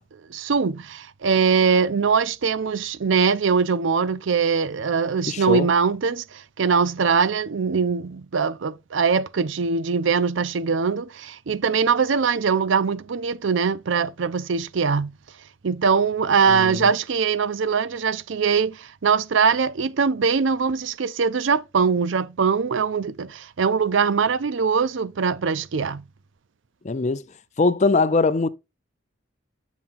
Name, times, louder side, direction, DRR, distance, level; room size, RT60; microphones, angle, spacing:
voice 1, 0.3-15.1 15.6-26.0, right 5 dB, 65° right, 0.5 m, -22 dB
voice 2, 5.3-5.7 16.5-16.9 26.8-27.2 27.6-28.5, left 3 dB, 35° left, 0.5 m, -21 dB
7.2 x 5.7 x 2.5 m
head